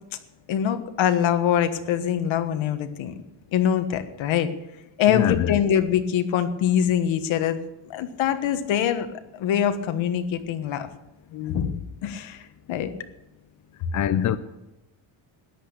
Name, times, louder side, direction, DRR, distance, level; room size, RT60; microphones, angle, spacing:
voice 1, 0.5-3.1 3.5-4.5 5.0-7.6 7.9-9.1 9.3-10.9 11.3-12.4 12.7-12.9, left 9 dB, 65° left, 1.5 m, -24 dB
voice 2, 5.1-5.6 13.9-14.4, left 10 dB, 40° left, 0.5 m, -23 dB
13.5 x 10.5 x 6.7 m
cardioid pair, 180°, 50 cm